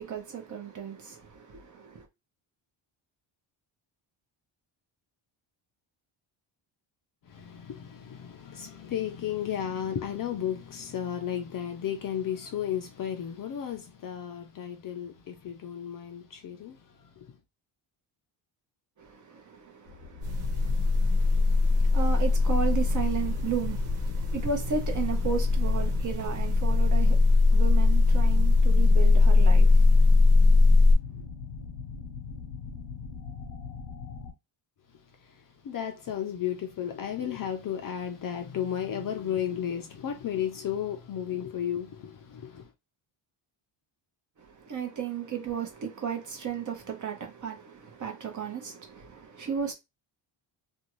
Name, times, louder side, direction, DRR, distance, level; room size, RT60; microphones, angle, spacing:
voice 1, 0.0-2.1 19.0-30.6 44.4-49.7, right 7 dB, 35° right, 0.8 m, -35 dB
voice 2, 7.2-17.3 35.2-42.7, left 9 dB, 45° left, 0.5 m, -34 dB
sound 1, 19.9-34.3, left 5 dB, 90° left, 0.9 m, -43 dB
sound 2, 20.2-30.9, left 3 dB, 90° right, 1.2 m, -21 dB
2.7 x 2.3 x 3.0 m
cardioid pair, 145°, 50 cm